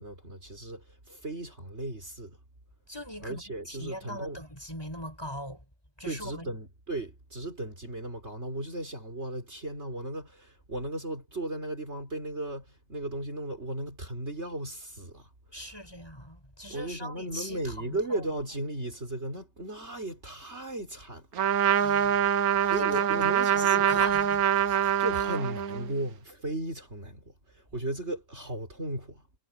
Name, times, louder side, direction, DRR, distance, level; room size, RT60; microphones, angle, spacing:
voice 1, 0.0-2.4 3.2-4.4 6.0-15.3 16.7-21.9 22.6-24.0 25.0-29.2, right 1 dB, 50° right, 4.8 m, -36 dB
voice 2, 2.9-5.6 6.0-6.5 15.5-18.2 21.7-22.2 22.6-24.9, equal, 15° left, 8.2 m, -41 dB
Trumpet, 21.3-25.9, right 9 dB, 80° right, 1.6 m, -25 dB
omnidirectional pair, 1.5 m